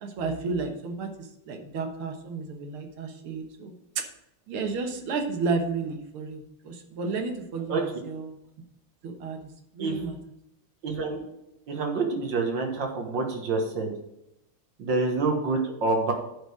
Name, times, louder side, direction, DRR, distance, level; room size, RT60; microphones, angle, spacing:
voice 1, 0.0-4.0 4.5-8.3 9.0-9.4 9.7-10.2, right 4 dB, 85° right, 5 dB, 2.1 m, -32 dB
voice 2, 10.8-11.2 11.7-13.9 14.8-16.1, right 3 dB, 60° right, 3 dB, 2.0 m, -27 dB
11.0 x 5.0 x 4.8 m, 0.86 s
omnidirectional pair, 2.3 m